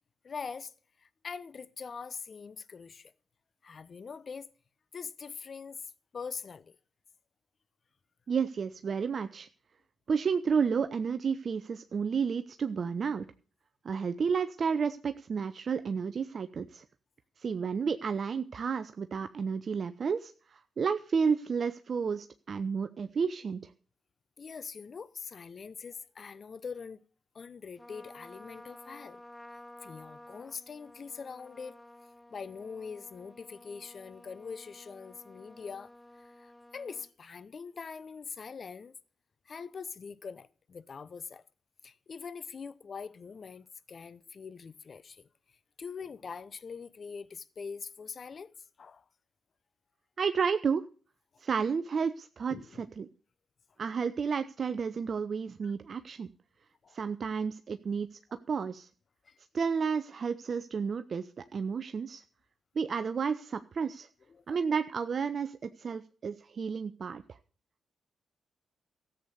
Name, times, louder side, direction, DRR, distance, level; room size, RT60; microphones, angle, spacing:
voice 1, 0.2-0.7 1.0-3.1 3.6-4.5 4.9-6.8 24.4-27.0 27.3-29.2 29.8-31.8 32.3-39.0 39.5-41.4 41.8-45.3 45.8-48.5 48.8-49.1 50.2-50.3 51.3-51.4 52.5-52.9 55.6-55.7 56.8-57.0 59.2-59.4 64.3-64.6 65.9-66.0, left 5 dB, 50° left, 0.8 m, -43 dB
voice 2, 8.3-9.5 10.1-13.3 13.8-16.8 17.4-23.6 50.2-50.9 51.4-53.1 53.8-56.3 56.9-58.1 58.5-58.9 59.5-62.2 62.8-64.1 64.5-67.2, right 6 dB, 55° right, 0.6 m, -31 dB
Trumpet, 27.8-37.1, left 1 dB, 10° left, 1.1 m, -53 dB
13.5 x 8.1 x 6.8 m
hypercardioid pair, 45°, 0 cm